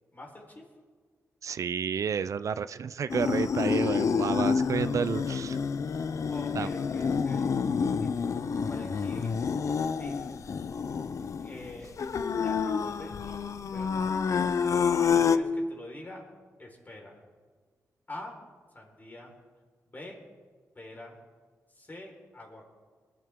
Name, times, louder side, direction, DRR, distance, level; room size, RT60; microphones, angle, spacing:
voice 1, 0.1-0.6 5.2-5.3 6.3-7.5 8.7-9.3 10.0-10.2 11.4-11.9 12.3-13.4 13.7-14.6 15.1-16.2 16.6-17.2 18.1-18.4 18.7-19.3 19.9-20.2 20.7-21.2 21.7-22.7, left 1 dB, 30° left, 0 dB, 4.6 m, -45 dB
voice 2, 1.4-5.6 6.5-6.7, right 7 dB, 65° right, 15 dB, 0.4 m, -31 dB
sound 1, 3.1-15.4, left 6 dB, 60° left, 0.6 m, -28 dB
22.0 x 12.5 x 3.7 m, 1.5 s
cardioid pair, 80°, 6 cm